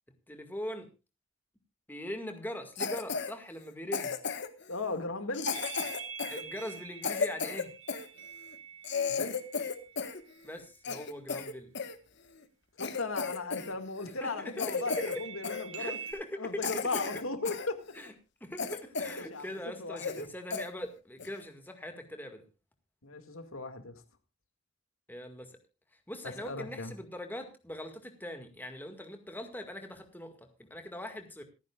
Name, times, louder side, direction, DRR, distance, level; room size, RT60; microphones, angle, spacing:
voice 1, 0.3-0.9 1.9-4.1 6.3-7.7 10.4-11.7 14.2-14.5 14.8-15.0 15.8-16.9 17.9-18.1 18.4-22.5 25.1-25.6 25.9-31.4, left 1 dB, 10° left, 6 dB, 2.0 m, -41 dB
Cough, 2.8-3.3 3.9-4.6 5.3-8.1 8.5-8.6 8.8-10.2 10.5-11.9 12.4-12.5 12.8-13.7 14.0-14.2 14.6-15.2 15.4-15.6 16.1-16.2 16.6-17.7 18.1-18.2 18.6-19.3 19.6-19.7 20.0-20.3 20.5-20.7 21.2-21.4, left 5 dB, 55° left, 1.5 m, -34 dB
voice 2, 4.7-5.5 9.1-9.4 12.8-16.0 16.4-17.8 19.1-19.5 19.8-20.2 23.0-24.0 26.4-26.9, left 3 dB, 85° left, 8 dB, 2.1 m, -36 dB
sound 1, 5.5-10.1 14.7-16.1, right 7 dB, 75° right, 4.6 m, -45 dB
27.0 x 9.6 x 2.4 m, 0.29 s
head